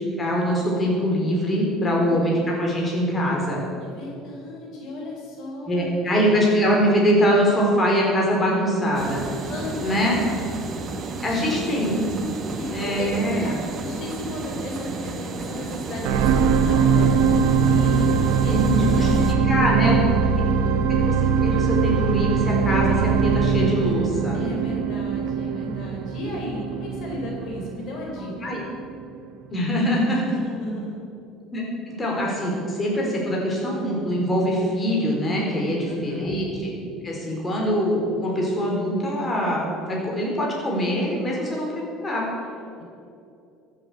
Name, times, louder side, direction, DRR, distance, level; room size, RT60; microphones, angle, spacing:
voice 1, 0.2-3.6 5.7-9.2 9.8-10.1 11.2-12.3 12.7-13.5 18.5-19.1 19.4-20.0 20.4-20.5 21.0-21.1 21.4-24.4 28.4-28.6 29.5-30.4 31.5-31.6 32.0-36.7 37.0-41.7 42.0-42.3, equal, 20° left, -2 dB, 4.2 m, -23 dB
voice 2, 1.8-2.4 3.8-6.3 9.5-10.2 11.2-11.9 12.5-19.9 20.2-20.7 24.3-28.6 30.3-31.0 35.9-36.3, left 2 dB, 55° left, -1 dB, 4.1 m, -35 dB
sound 1, 8.9-19.4, right 3 dB, 35° right, 1.6 m, -32 dB
sound 2, 16.0-28.4 29.0-29.1, right 5 dB, 75° right, 0.8 m, -21 dB
14.0 x 8.4 x 8.1 m, 2.6 s
supercardioid pair, 110°, 0 cm